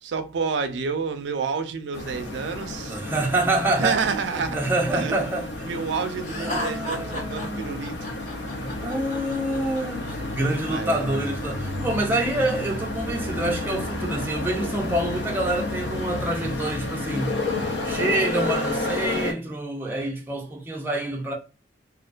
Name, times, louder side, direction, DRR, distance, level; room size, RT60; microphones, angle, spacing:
voice 1, 0.0-3.0 3.8-4.6 4.9-5.3 5.7-8.1 10.7-11.2, right 5 dB, 85° right, 0.4 m, -29 dB
sound 1, 1.9-19.3, left 2 dB, 75° left, 0.5 m, -31 dB
voice 2, 2.9-4.0 4.3-5.7 6.4-7.8 8.5-17.4 17.8-21.3, right 1 dB, 10° right, 0.4 m, -27 dB
Laughter, 6.2-10.2, left 1 dB, 45° left, 0.7 m, -34 dB
2.4 x 2.1 x 2.3 m
head